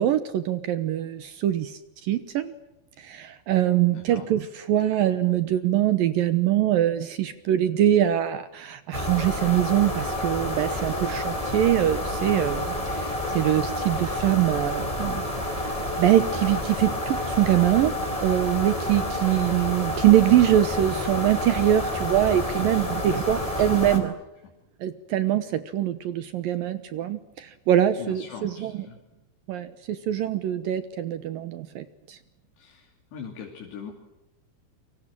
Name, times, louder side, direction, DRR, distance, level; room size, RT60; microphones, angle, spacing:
voice 1, 0.0-2.5 3.0-15.2 15.5-17.9 18.2-24.1 24.8-28.8 29.5-32.2, right 12 dB, 70° right, 12 dB, 2.3 m, -23 dB
voice 2, 3.9-4.3 22.3-24.0 28.0-29.0 32.6-33.9, left 6 dB, 75° left, 2 dB, 5.0 m, -42 dB
sound 1, 8.9-24.0, left 1 dB, 10° left, 3.7 m, -29 dB
29.5 x 24.5 x 7.4 m, 0.97 s
omnidirectional pair, 5.0 m